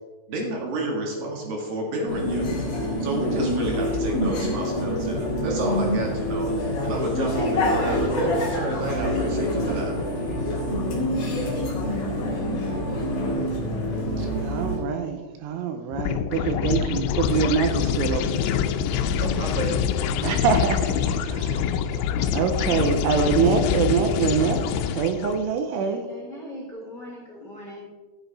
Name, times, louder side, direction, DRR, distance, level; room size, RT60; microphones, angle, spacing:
voice 1, 0.3-2.5 3.0-6.5 6.8-10.0 19.2-19.7, right 1 dB, 55° right, 0 dB, 2.8 m, -30 dB
sound 1, 2.1-14.8, left 1 dB, 50° left, 1.8 m, -26 dB
voice 2, 14.2-19.2 20.2-26.0, right 6 dB, 80° right, 7 dB, 3.0 m, -25 dB
sound 2, 15.9-25.4, left 8 dB, 90° left, 3.4 m, -25 dB
voice 3, 25.7-27.8, left 1 dB, 65° left, -4 dB, 1.0 m, -40 dB
14.0 x 7.9 x 4.1 m, 1.3 s
omnidirectional pair, 5.9 m